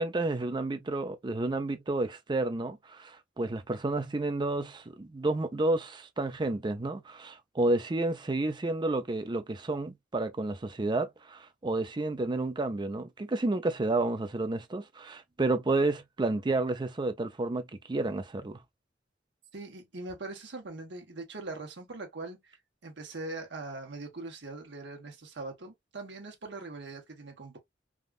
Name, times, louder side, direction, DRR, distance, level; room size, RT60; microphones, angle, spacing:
voice 1, 0.0-17.6 17.9-18.6, right 2 dB, 25° right, 0.5 m, -30 dB
voice 2, 19.5-22.6 22.8-27.6, right 2 dB, 65° right, 1.2 m, -41 dB
3.5 x 2.3 x 2.3 m
head